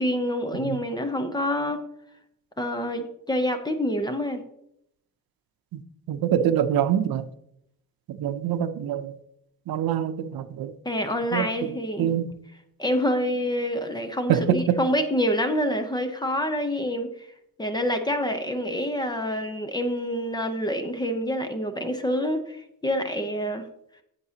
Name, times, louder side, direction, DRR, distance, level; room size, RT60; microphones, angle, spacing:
voice 1, 0.0-1.8 2.6-4.4 10.8-12.1 12.8-17.3 17.6-23.6, equal, 10° left, 0.6 m, -27 dB
voice 2, 6.1-7.3 8.1-9.1 9.7-10.7 11.3-12.3 14.3-14.8, right 9 dB, 80° right, 0.6 m, -25 dB
10.5 x 8.2 x 2.8 m
wide cardioid pair, 175°, 35 cm